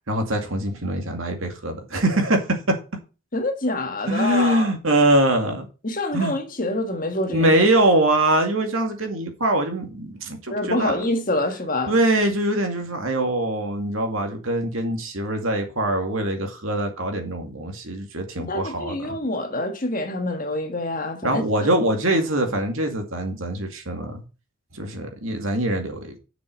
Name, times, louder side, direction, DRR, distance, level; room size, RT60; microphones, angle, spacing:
voice 1, 0.1-2.8 4.1-5.7 6.1-6.4 7.3-10.9 11.9-19.2 21.2-24.2 24.7-26.2, right 1 dB, 75° right, 2.3 m, -23 dB
voice 2, 3.3-4.7 5.8-7.5 10.5-12.0 18.4-21.4, left 2 dB, 40° left, 1.5 m, -26 dB
7.2 x 6.2 x 6.7 m
head